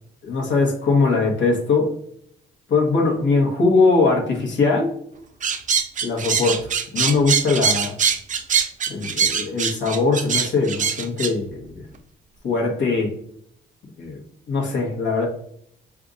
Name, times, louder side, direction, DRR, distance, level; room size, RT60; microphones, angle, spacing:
voice 1, 0.2-1.9 2.7-4.9 6.0-6.6 6.9-7.9 8.9-11.8 12.4-13.1 14.0-14.2 14.5-15.3, left 3 dB, 65° left, 0 dB, 1.2 m, -20 dB
sound 1, 5.4-11.3, right 6 dB, 40° right, 0.5 m, -22 dB
5.0 x 3.4 x 2.5 m, 0.67 s
cardioid pair, 90°, 20 cm